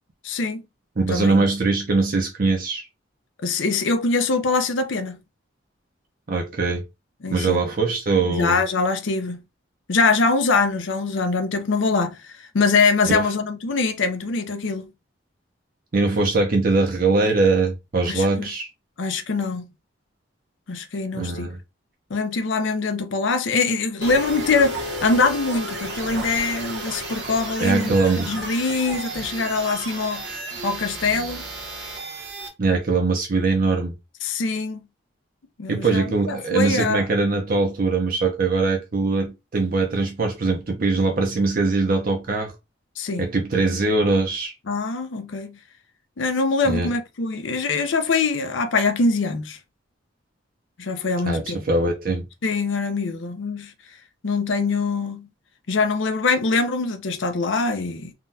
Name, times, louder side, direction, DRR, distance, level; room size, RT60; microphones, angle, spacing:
voice 1, 0.2-0.7 1.1-1.4 3.4-5.2 7.2-7.6 8.3-9.4 9.9-14.9 18.1-18.5 19.0-19.7 20.7-21.5 22.1-27.9 28.3-30.3 30.6-31.5 34.2-34.8 35.6-37.0 43.0-43.3 44.7-45.6 46.2-49.6 50.8-51.6 52.4-53.7 54.2-55.3 55.7-58.1, left 4 dB, 75° left, 0.6 m, -23 dB
voice 2, 1.0-2.9 6.3-6.8 7.3-8.6 13.0-13.2 15.9-18.7 21.1-21.6 27.6-28.3 32.6-33.9 35.7-42.5 43.2-44.5 46.7-46.9 51.2-52.2, right 3 dB, 45° right, 0.6 m, -22 dB
sound 1, 24.0-32.5, right 2 dB, 65° right, 0.9 m, -32 dB
3.6 x 2.2 x 2.6 m
head